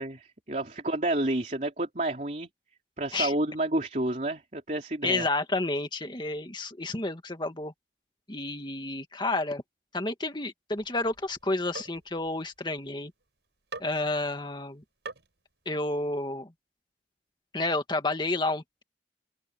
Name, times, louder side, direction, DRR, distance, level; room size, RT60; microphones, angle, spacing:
voice 1, 0.0-2.5 3.0-5.3, right 1 dB, 45° right, 3.0 m, -30 dB
voice 2, 5.0-7.7 8.3-9.6 9.9-13.1 13.8-14.8 15.7-16.5 17.5-18.8, left 2 dB, 25° left, 1.9 m, -30 dB
sound 1, 10.8-13.2 13.7-14.3 15.1-15.4, right 3 dB, 85° right, 5.1 m, -45 dB
open air
head